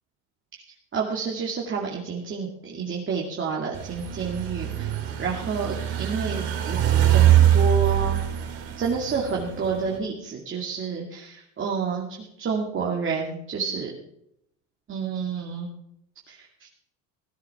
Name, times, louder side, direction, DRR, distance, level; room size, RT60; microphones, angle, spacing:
voice 1, 0.9-8.2 8.8-13.9 14.9-15.7 16.3-16.7, right 5 dB, 35° right, -2 dB, 2.3 m, -29 dB
sound 1, 3.7-10.0, right 11 dB, 70° right, 4.3 m, -23 dB
16.5 x 10.5 x 5.8 m, 0.78 s
supercardioid pair, 105°, 37 cm